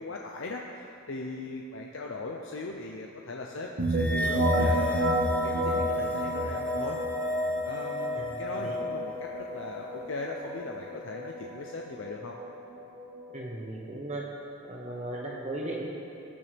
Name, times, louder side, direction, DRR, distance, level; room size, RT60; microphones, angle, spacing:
voice 1, 0.0-7.0 7.3-12.4, left 3 dB, 70° left, 0 dB, 0.7 m, -39 dB
sound 1, 3.8-13.4, equal, 65° right, 1.5 m, -31 dB
sound 2, 3.9-10.5, left 1 dB, 5° left, 0.9 m, -34 dB
voice 2, 8.1-8.8 13.3-14.3 14.7-15.9, right 1 dB, 35° right, -2 dB, 1.1 m, -37 dB
18.5 x 7.0 x 3.5 m, 2.7 s
head